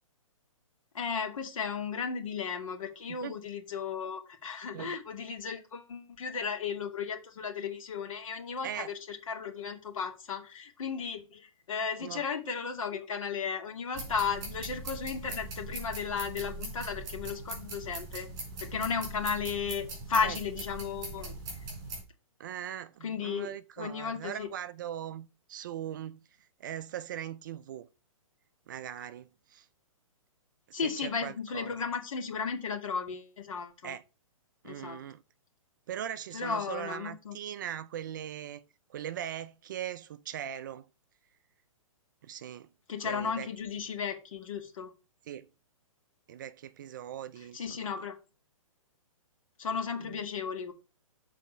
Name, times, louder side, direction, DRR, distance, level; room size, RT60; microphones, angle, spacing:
voice 1, 0.9-18.3 18.6-21.4 23.0-23.5 23.8-24.5 30.7-33.9 34.6-35.0 36.3-37.4 42.9-44.9 47.5-48.2 49.6-50.7, left 6 dB, 70° left, 2.4 m, -35 dB
sound 1, 13.9-22.0, right 2 dB, 20° right, 3.9 m, -41 dB
voice 2, 22.4-26.2 26.6-27.9 28.7-29.7 30.7-31.8 33.8-34.0 34.6-35.2 35.9-38.6 38.9-40.9 42.2-42.7 43.0-43.5 45.3-45.5 46.3-47.9 50.0-50.2, right 10 dB, 35° right, 0.4 m, -40 dB
7.2 x 4.1 x 5.7 m
hypercardioid pair, 160°, 18 cm